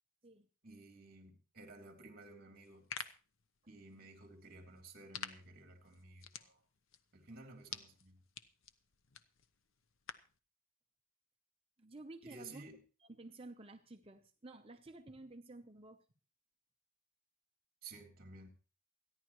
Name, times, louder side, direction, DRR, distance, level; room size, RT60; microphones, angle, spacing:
voice 1, 0.6-2.9 3.7-6.6 7.1-8.2 12.2-12.8 17.8-18.5, right 3 dB, 45° right, 3.0 m, -54 dB
sound 1, 2.6-10.4, left 7 dB, 75° left, 0.9 m, -51 dB
voice 2, 11.8-12.6 13.0-16.0, right 2 dB, 25° right, 0.7 m, -52 dB
28.0 x 10.5 x 3.1 m
head